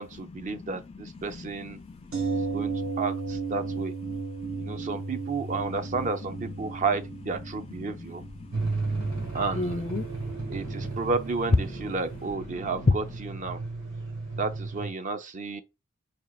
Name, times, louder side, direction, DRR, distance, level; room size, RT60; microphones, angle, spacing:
voice 1, 0.0-1.8 2.3-3.9 4.6-8.2 9.3-9.9 10.5-13.6 14.4-15.6, right 4 dB, 40° right, 0.5 m, -32 dB
voice 2, 1.8-2.7 4.1-4.2 4.4-5.0 7.8-8.1 8.4-9.3 9.6-10.1 10.3-10.9 12.6-12.9, left 3 dB, 30° left, 0.3 m, -33 dB
sound 1, 2.1-12.0 12.3-12.4, right 4 dB, 85° right, 1.2 m, -35 dB
sound 2, 8.5-14.9, right 3 dB, 65° right, 2.1 m, -34 dB
4.2 x 2.8 x 2.3 m
head